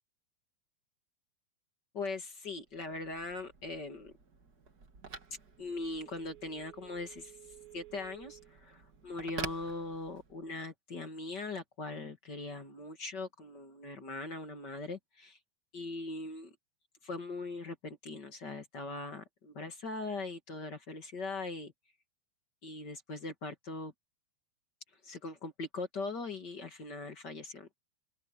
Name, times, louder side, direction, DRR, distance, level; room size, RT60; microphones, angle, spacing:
voice 1, 1.9-4.1 5.6-7.3 7.7-15.4 15.7-16.5 17.0-21.7 22.6-23.9 25.0-27.8, left 3 dB, 35° left, 1.9 m, -40 dB
Telephone, 2.6-10.5, right 5 dB, 40° right, 1.5 m, -48 dB
open air
omnidirectional pair, 4.7 m